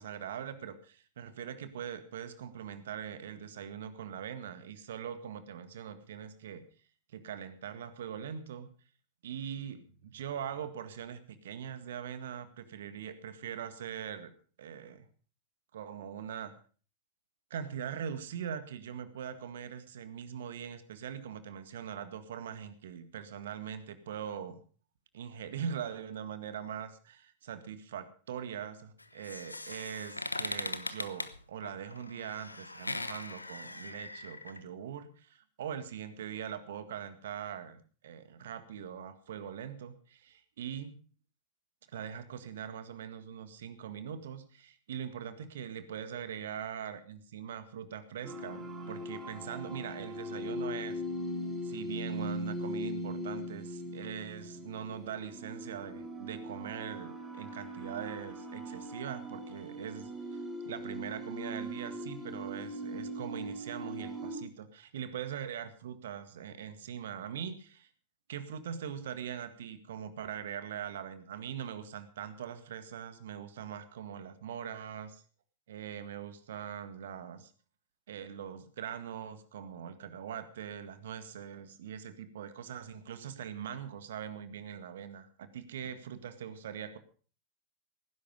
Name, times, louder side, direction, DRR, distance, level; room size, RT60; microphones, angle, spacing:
voice 1, 0.0-6.6 7.1-8.7 9.2-14.3 14.6-15.1 15.7-16.5 17.5-24.6 25.1-41.0 41.9-51.0 51.6-60.1 60.6-67.9 68.3-75.2 75.7-77.5 78.1-87.0, right 8 dB, 60° right, 11 dB, 1.8 m, -42 dB
sound 1, 29.0-34.6, left 2 dB, 85° left, 0.9 m, -40 dB
sound 2, 48.2-64.4, equal, 15° right, 5.7 m, -40 dB
18.0 x 10.5 x 5.3 m, 0.40 s
figure-of-eight pair, 90°, 0 cm